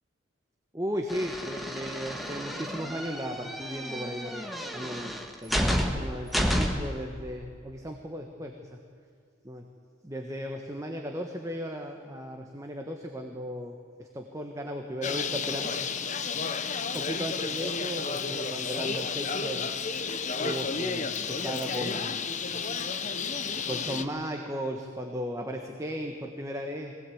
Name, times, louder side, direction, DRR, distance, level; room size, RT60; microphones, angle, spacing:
voice 1, 0.7-5.1 5.4-8.8 9.4-9.6 10.0-15.7 16.9-19.7 20.4-22.2 23.7-26.9, equal, 15° right, 3 dB, 1.4 m, -36 dB
sound 1, 1.1-7.0, equal, ahead, 1.7 m, -31 dB
Bird, 15.0-24.0, left 5 dB, 40° left, 0.9 m, -32 dB
22.5 x 18.0 x 8.7 m, 2.3 s
head